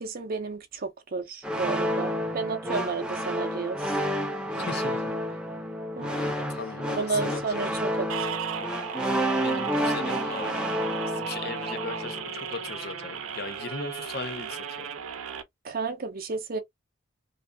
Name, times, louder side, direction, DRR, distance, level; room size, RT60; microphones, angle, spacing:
voice 1, 0.0-3.8 6.0-6.3 6.9-8.4 15.6-16.6, right 4 dB, 45° right, 0.6 m, -32 dB
sound 1, 1.4-12.3, equal, 5° right, 0.5 m, -30 dB
voice 2, 4.5-5.2 6.0-7.8 9.4-10.7 11.1-14.9, left 4 dB, 50° left, 0.7 m, -38 dB
sound 2, 8.1-15.4, right 7 dB, 85° right, 0.6 m, -35 dB
2.6 x 2.4 x 3.4 m
head